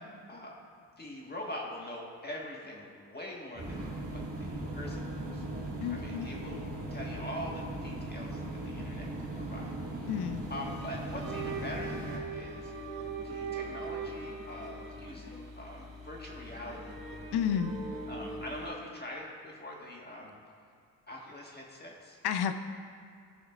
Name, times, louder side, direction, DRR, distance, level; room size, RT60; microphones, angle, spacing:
voice 1, 1.0-5.4 5.9-6.6 6.9-9.8 10.5-12.7 13.2-16.9 18.1-20.4 21.1-22.2, left 1 dB, 20° left, -2 dB, 1.6 m, -43 dB
sound 1, 3.6-12.2, right 1 dB, 30° right, 2.2 m, -38 dB
voice 2, 5.8-6.3 10.1-10.4 17.3-17.7 22.2-22.5, left 8 dB, 55° left, 9 dB, 0.7 m, -30 dB
guitar loop indian invert, 11.1-18.7, right 3 dB, 90° right, 2.2 m, -41 dB
17.5 x 6.3 x 2.5 m, 2.4 s
hypercardioid pair, 55°, 48 cm